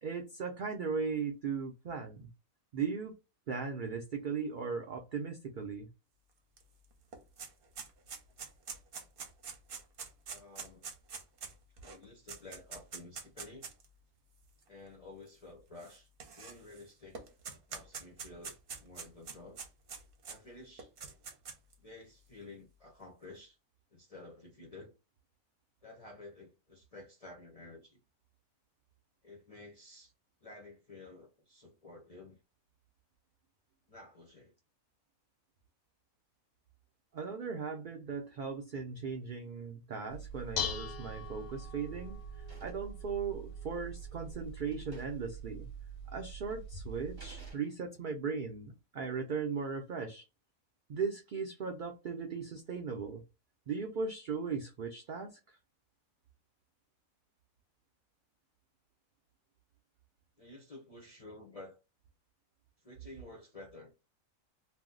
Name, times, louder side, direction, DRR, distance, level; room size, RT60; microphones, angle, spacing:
voice 1, 0.0-2.3 2.7-3.1 3.5-5.9 37.1-45.7 46.1-50.3 50.9-53.2 53.7-55.6, right 5 dB, 90° right, 0.4 m, -38 dB
sound 1, 6.6-6.7 6.9-13.8 14.6-14.7 15.8-16.8 17.1-20.4 20.8-21.7, right 5 dB, 55° right, 0.7 m, -45 dB
voice 2, 10.3-10.9 11.8-13.7 14.7-16.1 16.4-17.2 17.7-19.6 20.2-20.9 21.8-23.6 23.9-24.9 25.8-28.0 29.2-30.1 30.4-32.4 33.9-34.5 60.4-61.8 62.8-63.9, left 2 dB, 50° left, 0.4 m, -52 dB
Dishes pots and pans, 40.1-47.5, left 1 dB, 90° left, 1.0 m, -42 dB
sound 2, 40.9-41.3 41.6-43.0 43.9-44.0 44.3-44.4 44.7-45.3 45.6-45.7 46.5-46.6 47.2-48.1, right 2 dB, 20° right, 0.7 m, -58 dB
2.6 x 2.1 x 3.6 m
omnidirectional pair, 1.4 m